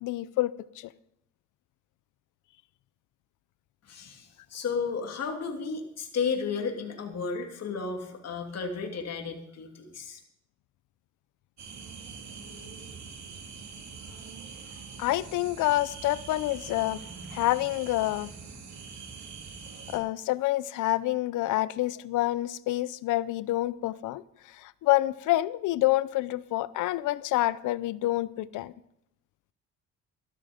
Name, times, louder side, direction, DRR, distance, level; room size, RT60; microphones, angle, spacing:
voice 1, 0.0-0.9 15.0-17.0 17.3-18.3 19.9-24.2 24.5-28.7, left 16 dB, 90° left, 0.6 m, -27 dB
voice 2, 3.8-10.2, left 5 dB, 55° left, 2.8 m, -33 dB
sound 1, 11.6-20.0, right 5 dB, 65° right, 2.9 m, -43 dB
13.5 x 12.5 x 5.1 m
cardioid pair, 90°, 30 cm